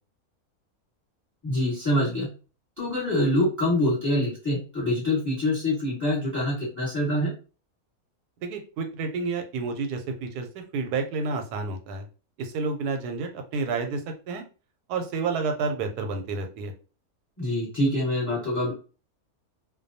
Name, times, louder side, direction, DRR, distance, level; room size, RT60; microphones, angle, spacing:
voice 1, 1.4-2.3 2.8-7.3 17.4-18.7, left 1 dB, 15° left, -6 dB, 1.1 m, -25 dB
voice 2, 8.4-12.0 12.4-14.0 14.3-14.4 14.9-16.7, right 4 dB, 85° right, 5 dB, 1.1 m, -30 dB
2.4 x 2.2 x 2.6 m, 0.35 s
omnidirectional pair, 1.6 m